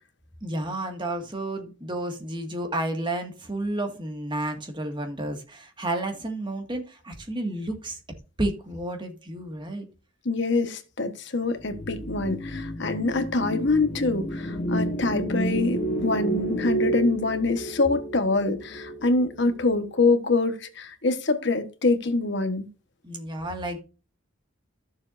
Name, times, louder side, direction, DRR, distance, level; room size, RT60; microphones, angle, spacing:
voice 1, 0.4-8.0 8.4-9.9 23.0-23.8, right 1 dB, 25° right, 1.9 m, -31 dB
voice 2, 10.2-22.7, left 3 dB, 55° left, 1.3 m, -25 dB
sound 1, 11.6-19.9, right 2 dB, 35° left, 1.2 m, -31 dB
13.5 x 7.1 x 2.6 m
head